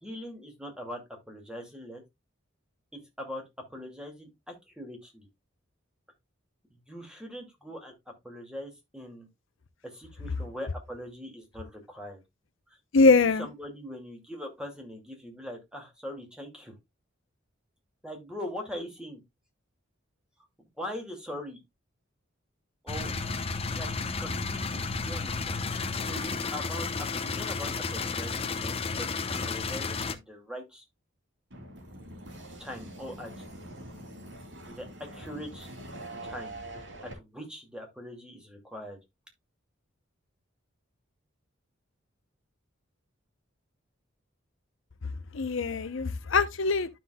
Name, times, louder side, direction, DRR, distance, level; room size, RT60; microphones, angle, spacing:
voice 1, 0.0-2.0 2.9-3.4 3.7-5.3 6.7-7.9 8.2-9.3 9.8-12.2 12.9-13.1 13.4-16.7 18.0-19.2 20.8-21.6 22.8-23.1 23.7-29.2 29.4-30.8 32.6-33.4 34.7-35.7 36.2-36.6 37.0-39.0, equal, 5° right, 2.2 m, -41 dB
voice 2, 12.9-13.5 45.3-46.9, left 3 dB, 70° left, 0.7 m, -22 dB
sound 1, 22.9-30.2, left 4 dB, 30° left, 0.7 m, -32 dB
sound 2, 31.5-37.1, right 1 dB, 60° right, 2.9 m, -44 dB
12.0 x 5.9 x 2.2 m
head